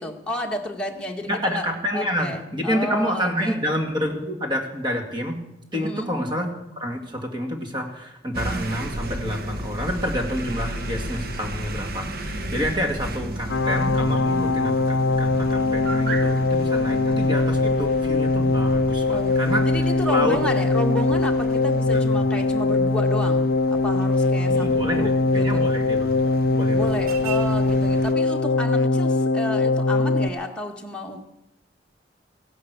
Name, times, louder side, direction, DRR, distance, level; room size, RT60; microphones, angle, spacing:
voice 1, 0.0-3.6 5.7-6.1 19.1-19.4 19.7-25.6 26.7-31.2, left 1 dB, 5° left, 0 dB, 1.8 m, -31 dB
voice 2, 1.3-5.4 5.7-6.5 6.8-20.4 21.9-22.3 24.5-27.2, equal, 25° right, 3 dB, 2.2 m, -28 dB
sound 1, 8.3-28.1, right 1 dB, 55° right, 1.3 m, -34 dB
sound 2, 13.5-30.3, left 3 dB, 80° left, 0.5 m, -21 dB
16.0 x 11.0 x 8.2 m, 0.89 s
head